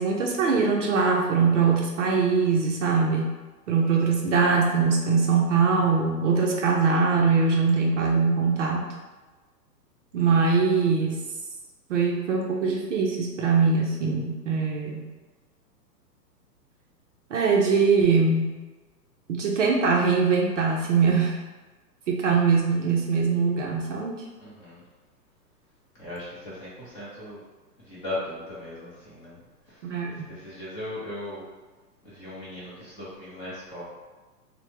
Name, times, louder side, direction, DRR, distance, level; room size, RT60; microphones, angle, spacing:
voice 1, 0.0-3.3 3.7-8.9 10.1-11.2 11.9-15.0 17.3-18.5 19.3-21.4 22.1-24.2 29.8-30.3, right 5 dB, 50° right, 0 dB, 0.4 m, -22 dB
voice 2, 24.4-24.8 26.0-27.4 27.9-29.4 30.3-31.4 32.0-33.8, left 1 dB, 20° left, -9 dB, 0.5 m, -37 dB
3.0 x 2.0 x 3.1 m, 1.2 s
hypercardioid pair, 145°, 49 cm